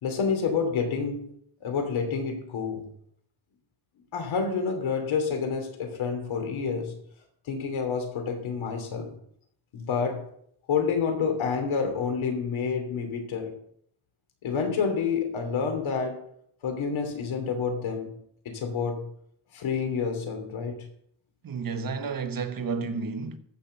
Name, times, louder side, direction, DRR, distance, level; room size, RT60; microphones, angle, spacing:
voice 1, 0.0-1.3 1.6-2.9 4.1-6.9 7.5-9.1 9.7-10.2 10.7-13.5 14.4-16.2 16.6-18.1 18.4-19.1 19.5-20.9, left 5 dB, 85° left, 3.0 m, -28 dB
voice 2, 21.4-23.4, right 4 dB, 45° right, 1.2 m, -31 dB
14.5 x 6.0 x 6.9 m
wide cardioid pair, 135°, 47 cm